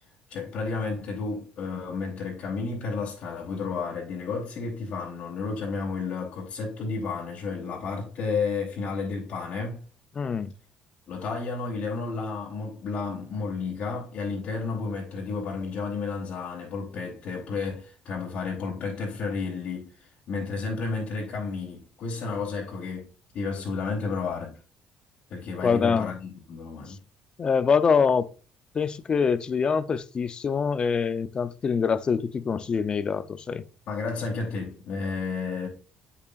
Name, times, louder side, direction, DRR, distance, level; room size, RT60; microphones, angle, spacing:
voice 1, 0.3-9.8 11.1-23.1 23.3-24.6 25.3-27.0 33.9-35.7, left 4 dB, 60° left, 2.7 m, -32 dB
voice 2, 10.2-10.5 25.6-26.1 27.4-28.3 28.7-33.6, left 6 dB, 35° left, 0.6 m, -24 dB
8.1 x 7.0 x 2.5 m
cardioid pair, 105°, 3 cm